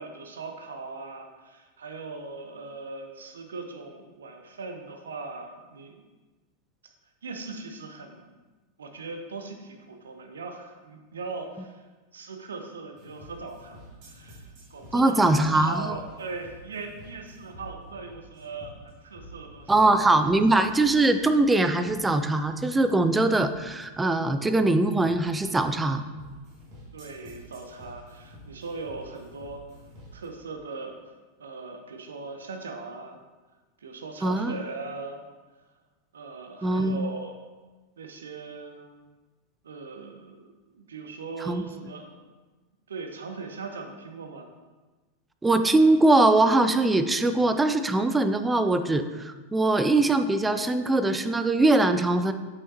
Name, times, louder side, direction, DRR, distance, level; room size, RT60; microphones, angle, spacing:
voice 1, 0.0-6.0 6.8-6.9 7.2-8.3 8.8-11.8 12.1-20.1 26.9-29.6 30.1-30.9 31.4-33.2 33.8-35.2 36.1-37.4 38.0-39.0 39.6-42.2 42.9-44.5, right 3 dB, 70° right, 4 dB, 0.8 m, -39 dB
sound 1, 13.0-30.3, equal, 40° right, 1.9 m, -49 dB
voice 2, 14.9-16.0 19.7-26.0 34.2-34.5 36.6-37.1 41.4-41.6 45.4-52.3, right 2 dB, 10° right, 9 dB, 0.4 m, -22 dB
8.3 x 5.5 x 2.8 m, 1.3 s
figure-of-eight pair, 90°, 0 cm